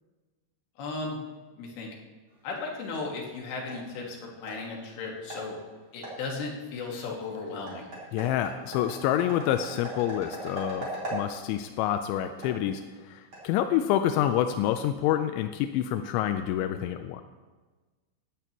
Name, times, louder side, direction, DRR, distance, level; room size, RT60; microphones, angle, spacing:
voice 1, 0.8-1.2 1.6-1.9 2.4-5.6 5.9-7.9, left 3 dB, 60° left, -1 dB, 3.2 m, -36 dB
sound 1, 2.3-14.1, right 2 dB, 30° right, 3.7 m, -42 dB
voice 2, 8.1-17.2, left 11 dB, 85° left, 7 dB, 2.7 m, -27 dB
17.0 x 11.0 x 3.0 m, 1.3 s
omnidirectional pair, 5.6 m